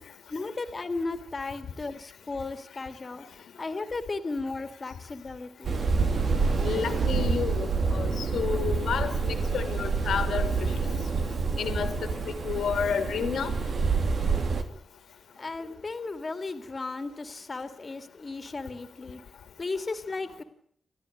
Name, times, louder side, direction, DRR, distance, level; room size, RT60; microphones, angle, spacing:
voice 1, 0.0-3.2 3.6-5.8 15.4-19.2 19.6-20.4, left 3 dB, 35° left, 9 dB, 2.6 m, -35 dB
sound 1, 5.6-14.6, right 4 dB, 60° right, 3.3 m, -27 dB
voice 2, 6.6-10.7 11.6-11.9 12.4-13.5, left 7 dB, 85° left, 8 dB, 2.9 m, -30 dB
30.0 x 13.0 x 9.4 m, 0.65 s
wide cardioid pair, 115°, 0 cm